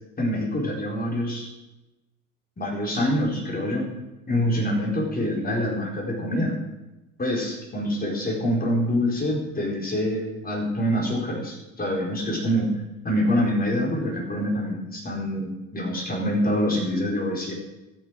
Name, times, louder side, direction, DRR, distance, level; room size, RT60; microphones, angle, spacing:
voice 1, 0.2-1.5 2.6-3.9 4.3-6.6 7.2-12.8 13.0-17.5, equal, 20° left, -1 dB, 4.4 m, -25 dB
13.5 x 8.9 x 6.2 m, 1.0 s
figure-of-eight pair, 70°, 43 cm